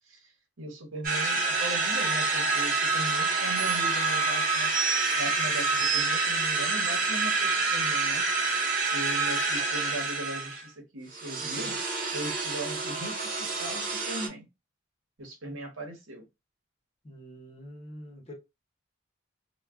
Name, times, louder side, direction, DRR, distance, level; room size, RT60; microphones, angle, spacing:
voice 1, 0.6-4.7 5.1-8.2 8.9-11.8 12.1-14.5 15.2-16.2, right 1 dB, 75° right, 0.9 m, -38 dB
sound 1, 1.0-10.6 11.1-14.3, right 3 dB, 40° right, 0.7 m, -27 dB
voice 2, 11.4-11.7 17.0-18.3, equal, 30° left, 0.8 m, -45 dB
2.2 x 2.2 x 3.4 m
head